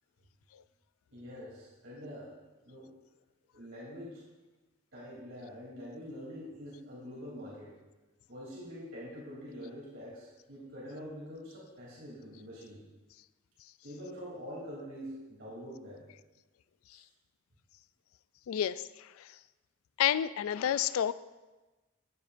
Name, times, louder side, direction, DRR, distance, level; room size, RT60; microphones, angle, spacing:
voice 1, 1.1-2.3 2.6-2.9 3.5-4.2 4.9-7.7 8.3-12.8 13.8-16.0 16.9-17.0, equal, 65° right, -7 dB, 3.0 m, -45 dB
voice 2, 18.5-19.3 20.0-21.1, left 10 dB, 85° left, 17 dB, 0.3 m, -30 dB
13.5 x 9.4 x 2.6 m, 1.2 s
head